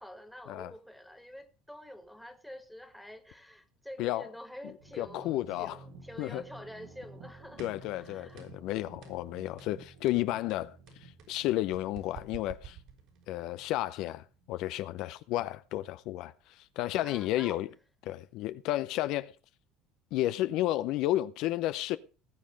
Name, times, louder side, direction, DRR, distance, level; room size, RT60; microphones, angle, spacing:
voice 1, 0.0-8.4 17.0-17.6, equal, ahead, 2.0 m, -47 dB
voice 2, 4.0-4.3 5.0-5.8 6.2-6.4 7.6-12.8 13.3-17.7 18.0-19.3 20.1-22.0, left 15 dB, 65° left, 0.6 m, -32 dB
sound 1, 4.8-16.3, right 3 dB, 80° right, 5.3 m, -54 dB
sound 2, 7.6-7.9 8.4-8.7 9.0-9.2 9.6-9.8 10.1-13.4, right 7 dB, 65° right, 5.4 m, -49 dB
19.0 x 7.4 x 5.2 m
supercardioid pair, 110°, 0 cm